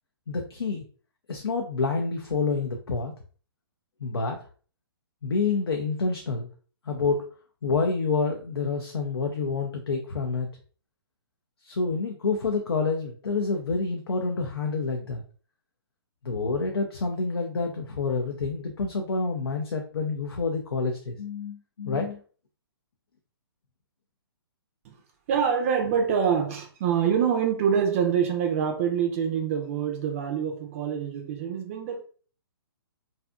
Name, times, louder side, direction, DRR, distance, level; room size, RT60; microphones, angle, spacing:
voice 1, 0.3-0.8 1.3-3.1 4.0-4.4 5.2-6.5 6.9-7.3 7.6-10.5 11.6-15.2 16.2-22.2, left 4 dB, 80° left, 0.5 m, -28 dB
voice 2, 25.3-32.1, right 7 dB, 35° right, 0.4 m, -25 dB
2.6 x 2.4 x 2.2 m
figure-of-eight pair, 125°, 13 cm